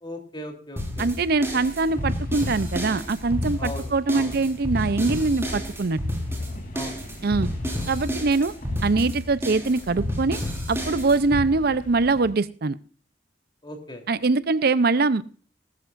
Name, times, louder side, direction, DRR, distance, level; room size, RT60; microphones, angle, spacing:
voice 1, 0.0-1.1 3.6-4.3 6.7-7.0 13.6-14.0, left 1 dB, 25° left, 3 dB, 3.3 m, -37 dB
sound 1, 0.8-11.4, left 1 dB, 15° right, 4.4 m, -30 dB
voice 2, 1.0-6.0 7.2-7.5 7.9-8.5 8.8-10.4 10.7-12.8 14.1-15.2, right 3 dB, 60° right, 16 dB, 0.6 m, -23 dB
sound 2, 1.4-12.3, equal, 50° left, 3.1 m, -42 dB
18.5 x 13.5 x 2.5 m, 0.41 s
head